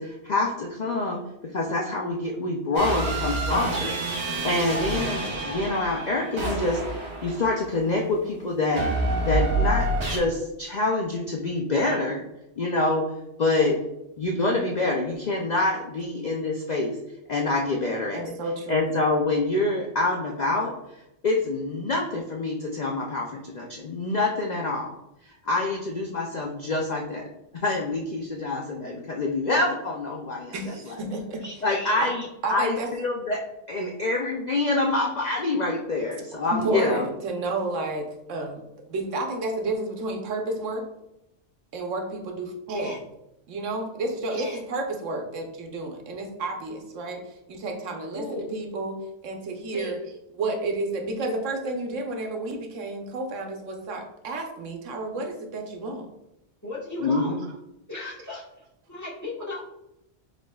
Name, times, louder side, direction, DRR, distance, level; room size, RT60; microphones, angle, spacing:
voice 1, 0.0-3.9 4.4-8.9 9.3-12.2 12.6-13.0 13.4-13.8 14.2-17.0 17.3-18.2 18.7-20.7 21.2-24.9 25.4-27.2 27.6-31.0 31.6-32.2 32.5-33.4 33.7-37.1 57.0-57.4, left 2 dB, 55° left, -1 dB, 0.5 m, -26 dB
sound 1, 2.7-7.9 8.8-10.2, right 2 dB, 65° right, 1.3 m, -28 dB
voice 2, 18.1-18.9 30.5-31.5 32.0-32.1 32.4-32.9 36.5-38.6 38.9-40.9 41.7-43.0 43.5-50.0 50.3-56.1 57.2-57.3, right 2 dB, 90° right, 3 dB, 1.1 m, -31 dB
voice 3, 31.4-32.3 42.7-43.0 44.3-44.6 48.1-48.5 49.7-50.0 56.6-57.4 57.9-58.4 58.9-59.6, left 2 dB, 15° left, -6 dB, 1.3 m, -36 dB
4.7 x 4.2 x 2.3 m, 0.86 s
omnidirectional pair, 1.3 m